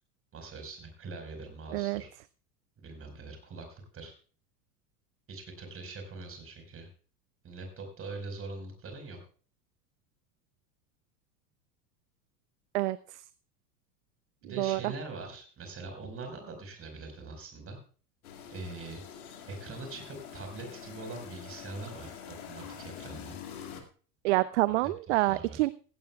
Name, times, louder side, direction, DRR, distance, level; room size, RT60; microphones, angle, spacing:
voice 1, 0.3-2.1 2.8-4.1 5.3-6.9 7.4-9.2 14.4-17.8 18.5-19.0 19.5-23.4 25.3-25.6, right 3 dB, 30° right, 4 dB, 4.7 m, -43 dB
voice 2, 1.7-2.0 12.7-13.2 14.6-14.9 24.2-25.7, right 19 dB, 50° right, 19 dB, 0.4 m, -27 dB
sound 1, 18.2-23.8, left 8 dB, 65° left, 2.2 m, -45 dB
17.0 x 15.5 x 2.3 m, 0.41 s
figure-of-eight pair, 80°, 48 cm